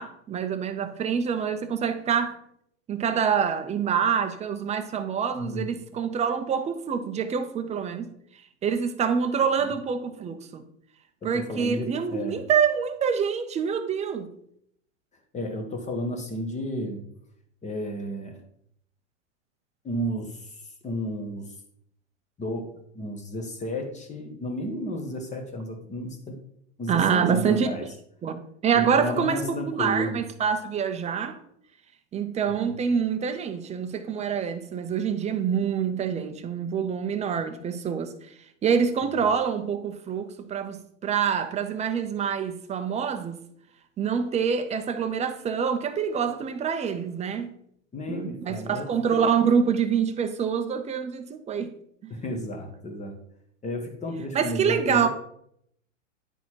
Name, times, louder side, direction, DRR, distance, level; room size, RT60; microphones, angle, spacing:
voice 1, 0.0-2.4 2.9-8.1 8.6-10.6 11.2-14.3 26.9-27.7 28.2-31.4 32.1-38.1 38.6-43.4 44.0-47.5 48.1-51.7 52.0-52.1 54.3-55.1, right 7 dB, 15° right, 0.7 m, -26 dB
voice 2, 5.4-5.7 11.2-12.4 15.3-17.1 17.6-18.4 19.8-21.5 22.4-26.4 26.8-27.8 28.7-30.2 32.5-32.7 47.9-49.2 52.1-53.2 53.6-55.1, equal, 20° left, 1.4 m, -32 dB
10.0 x 4.0 x 4.6 m
hypercardioid pair, 115°, 39 cm